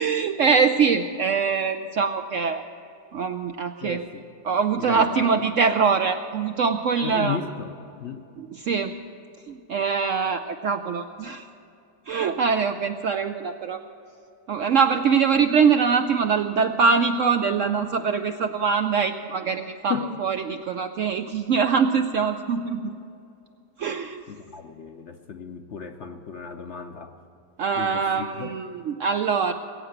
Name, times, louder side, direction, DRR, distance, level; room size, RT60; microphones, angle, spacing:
voice 1, 0.0-2.6 3.1-4.0 4.4-7.4 8.4-8.9 9.5-11.4 12.1-13.8 14.5-22.9 23.8-24.2 27.6-29.5, right 5 dB, 70° right, 7 dB, 0.7 m, -23 dB
voice 2, 3.8-4.2 4.8-5.4 7.0-7.8 8.0-8.2 19.9-20.2 24.3-27.1 27.7-28.6, left 7 dB, 60° left, 6 dB, 0.8 m, -34 dB
20.5 x 8.7 x 7.9 m, 2.7 s
omnidirectional pair, 1.8 m